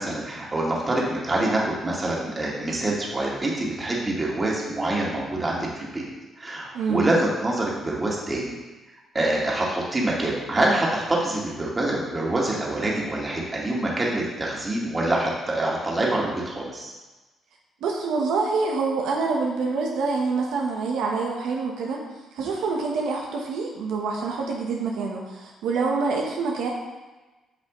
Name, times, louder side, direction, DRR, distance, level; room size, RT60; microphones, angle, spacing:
voice 1, 0.0-6.1 6.4-8.6 9.1-16.9 22.4-22.5, right 1 dB, 25° right, -3 dB, 2.0 m, -26 dB
voice 2, 6.7-7.1 17.8-22.0 22.3-26.7, right 4 dB, 85° right, -2 dB, 1.1 m, -26 dB
8.8 x 5.7 x 3.1 m, 1.2 s
cardioid pair, 90°, 0 cm